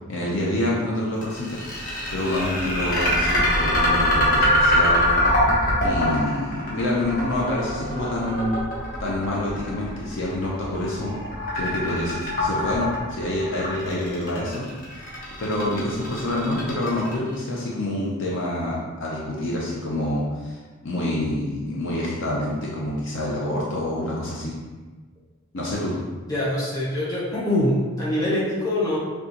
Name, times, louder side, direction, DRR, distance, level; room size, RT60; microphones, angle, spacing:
voice 1, 0.1-1.6 2.1-5.0 5.8-8.6 9.0-11.1 11.5-14.7 15.4-24.5 25.5-26.0, left 1 dB, 55° left, -4 dB, 0.6 m, -27 dB
sound 1, 1.2-17.3, left 1 dB, 40° left, 1.1 m, -23 dB
voice 2, 26.3-29.0, left 1 dB, 15° left, -8 dB, 1.1 m, -24 dB
6.1 x 2.3 x 2.9 m, 1.3 s
head